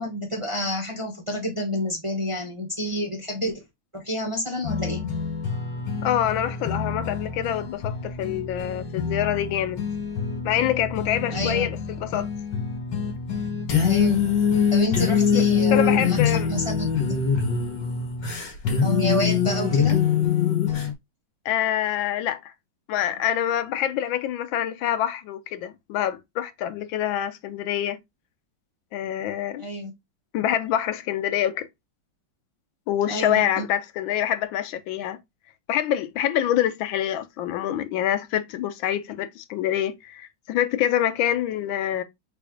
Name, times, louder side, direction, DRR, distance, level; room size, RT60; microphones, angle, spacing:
voice 1, 0.0-3.6 3.9-5.0 11.3-11.7 13.8-14.3 14.7-17.2 18.8-20.1 29.6-29.9 33.0-33.6, left 1 dB, 25° right, 0.8 m, -29 dB
sound 1, 4.6-20.9, left 6 dB, 65° left, 1.9 m, -25 dB
voice 2, 6.0-9.8 10.4-12.3 15.3-15.5 15.7-16.5 21.4-22.5 22.9-28.0 28.9-29.6 30.3-31.7 32.9-35.2 35.7-42.0, left 11 dB, 85° left, 1.4 m, -26 dB
4.1 x 3.5 x 3.7 m
omnidirectional pair, 2.1 m